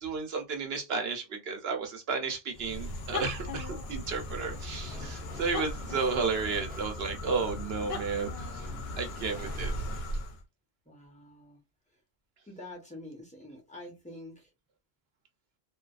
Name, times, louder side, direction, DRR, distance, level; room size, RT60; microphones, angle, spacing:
voice 1, 0.0-8.7 9.0-9.8, right 5 dB, 75° right, 1.0 m, -33 dB
sound 1, 2.5-10.4, left 1 dB, 80° left, 0.9 m, -37 dB
sound 2, 4.4-10.0, right 1 dB, 10° right, 0.5 m, -50 dB
voice 2, 10.8-11.6 12.5-14.5, left 1 dB, 5° left, 1.0 m, -47 dB
2.6 x 2.4 x 2.2 m
omnidirectional pair, 1.1 m